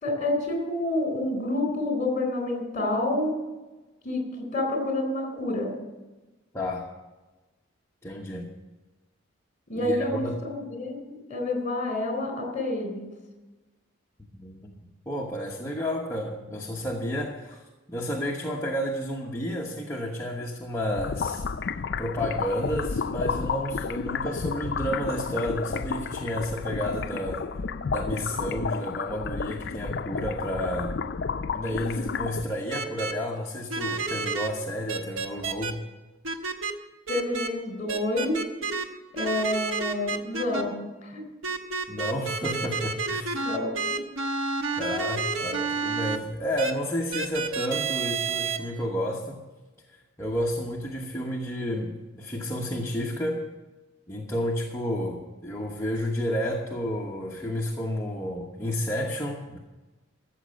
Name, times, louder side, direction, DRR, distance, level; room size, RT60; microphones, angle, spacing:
voice 1, 0.0-3.3 4.0-5.8 9.7-13.1 37.1-38.4 39.1-41.2 43.4-44.0, left 2 dB, 40° left, 3 dB, 3.7 m, -28 dB
voice 2, 6.5-6.9 8.0-8.5 9.8-10.4 14.3-14.7 15.1-17.6 17.9-21.5 22.0-27.5 27.9-31.0 31.5-35.8 41.9-43.4 44.7-49.4 49.9-53.4 54.1-59.6, equal, 15° left, -3 dB, 1.1 m, -31 dB
sound 1, 20.9-32.4, left 5 dB, 55° left, 0.5 m, -31 dB
sound 2, 32.7-33.1 33.7-34.5 34.9-35.7 36.2-36.7 37.1-37.5 37.9-38.9 39.2-40.6 41.4-46.2 46.6-46.7 47.1-48.6, right 4 dB, 75° right, 1.2 m, -30 dB
14.0 x 7.4 x 7.8 m, 1.1 s
head